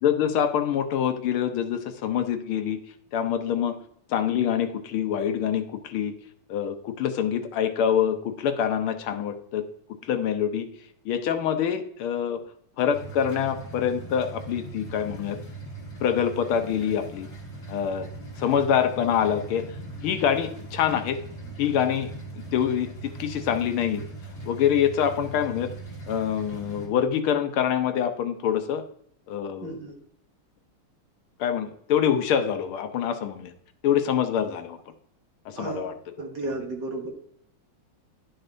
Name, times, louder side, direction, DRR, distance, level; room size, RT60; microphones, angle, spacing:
voice 1, 0.0-2.8 3.1-3.8 4.1-6.1 6.5-9.6 10.0-10.7 11.0-12.4 12.8-15.4 16.0-17.3 17.7-18.1 18.4-19.6 20.0-21.2 21.6-24.0 24.4-25.7 26.1-28.8 29.3-29.7 31.4-33.5 33.8-34.8 35.4-35.9, left 8 dB, 80° left, 8 dB, 1.6 m, -25 dB
sound 1, 12.9-26.9, right 2 dB, 40° left, 2.8 m, -40 dB
voice 2, 29.6-30.0 35.6-35.9 36.2-37.1, right 2 dB, 55° right, 1 dB, 2.0 m, -33 dB
11.0 x 6.4 x 2.6 m, 0.69 s
omnidirectional pair, 2.4 m